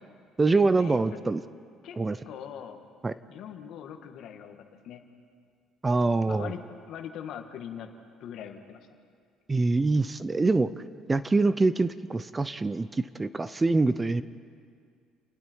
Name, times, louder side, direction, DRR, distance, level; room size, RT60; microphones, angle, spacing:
voice 1, 0.4-1.4 2.0-2.2 3.0-3.1 5.8-6.5 9.5-10.7 11.1-14.2, right 3 dB, 20° right, 14 dB, 0.7 m, -24 dB
voice 2, 2.3-2.8 3.3-4.6 4.8-5.0 6.3-6.6 6.9-7.9 8.2-8.9, left 9 dB, 65° left, 5 dB, 2.0 m, -41 dB
30.0 x 19.0 x 4.7 m, 2.1 s
cardioid pair, 95°, 0 cm